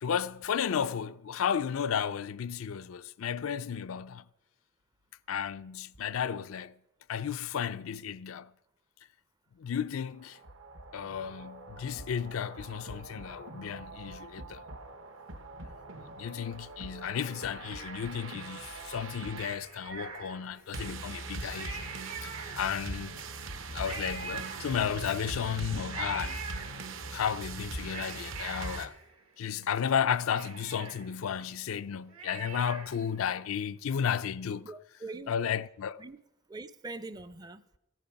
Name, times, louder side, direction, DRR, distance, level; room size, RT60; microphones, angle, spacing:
voice 1, 0.0-4.2 5.3-6.7 7.1-8.5 9.6-10.4 10.9-14.6 16.2-23.2 23.7-26.7 27.1-29.0 29.4-34.7 35.3-36.0, left 8 dB, 80° left, 0.4 m, -33 dB
sound 1, 10.1-28.9, right 3 dB, 70° right, 1.0 m, -42 dB
Cat, 17.0-18.5 19.3-20.7 21.2-21.3 21.5-23.0 23.8-25.2 25.9-27.2 27.6-29.6 30.0-30.1 30.3-33.1 33.4-33.5, right 5 dB, 90° right, 2.2 m, -44 dB
voice 2, 34.6-35.3 36.0-36.2 36.5-37.6, right 2 dB, 20° right, 0.4 m, -42 dB
15.0 x 9.1 x 5.7 m
head